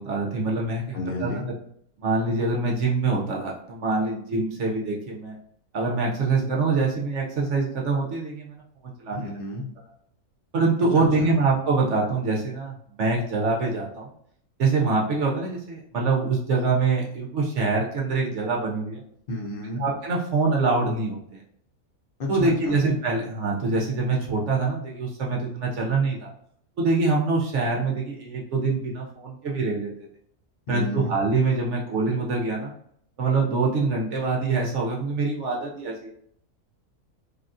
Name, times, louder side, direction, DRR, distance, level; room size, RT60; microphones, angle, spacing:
voice 1, 0.0-1.5 2.0-5.3 5.7-8.5 8.8-9.4 10.5-14.1 14.6-19.0 19.8-21.4 22.3-26.3 26.8-29.9 30.7-32.7 33.2-36.1, right 3 dB, 65° right, -2 dB, 0.8 m, -25 dB
voice 2, 0.9-1.4 9.1-9.7 10.9-11.3 19.3-19.8 22.2-22.8 30.7-31.2, left 1 dB, 50° left, -1 dB, 0.7 m, -31 dB
3.4 x 2.3 x 2.5 m, 0.67 s
omnidirectional pair, 1.6 m